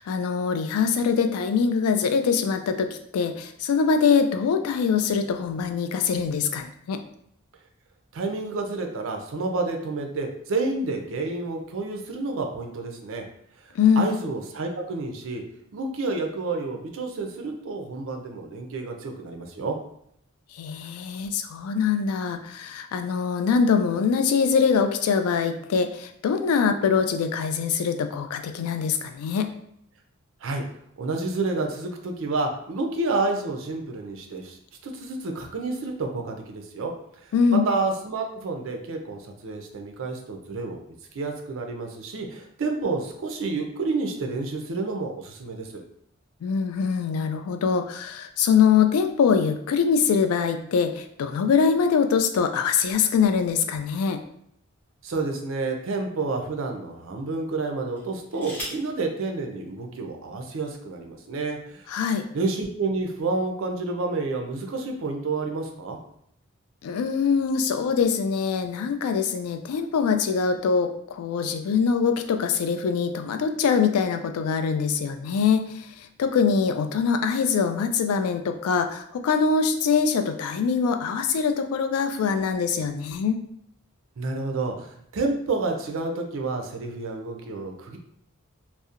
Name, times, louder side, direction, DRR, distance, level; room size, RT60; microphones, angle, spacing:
voice 1, 0.0-7.0 13.8-14.1 20.5-29.5 37.3-37.6 46.4-54.2 61.9-62.3 66.8-83.4, left 6 dB, 85° left, 7 dB, 0.3 m, -23 dB
voice 2, 8.1-13.2 14.0-15.4 15.7-19.8 30.4-30.6 31.0-34.6 34.8-40.8 41.1-45.8 55.0-61.8 62.3-66.0 84.2-88.0, right 3 dB, 65° right, 3 dB, 0.4 m, -29 dB
sound 1, 54.5-55.4 56.1-56.3 57.9-59.0 60.1-60.2 60.5-60.9, equal, 10° left, 0.6 m, -40 dB
2.7 x 2.1 x 2.4 m, 0.70 s
head